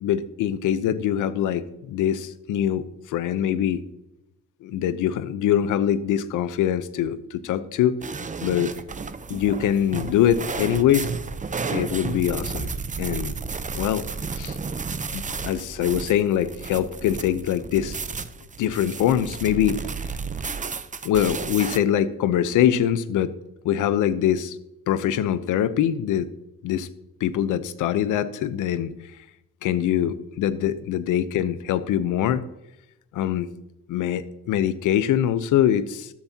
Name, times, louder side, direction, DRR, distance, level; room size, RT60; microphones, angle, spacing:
voice 1, 0.0-2.8 3.1-3.8 4.6-7.9 8.4-8.7 9.3-11.1 11.7-12.7 13.0-13.3 13.7-14.0 14.3-14.6 15.1-18.0 18.6-19.8 21.0-23.3 23.6-24.6 24.9-26.3 26.6-26.9 27.2-28.9 29.6-32.4 33.1-33.5 33.9-36.1, left 10 dB, 85° left, 13 dB, 0.9 m, -23 dB
sound 1, 8.0-21.8, right 5 dB, 25° right, 0.8 m, -32 dB
13.0 x 13.0 x 2.9 m, 0.87 s
cardioid pair, 90°, 30 cm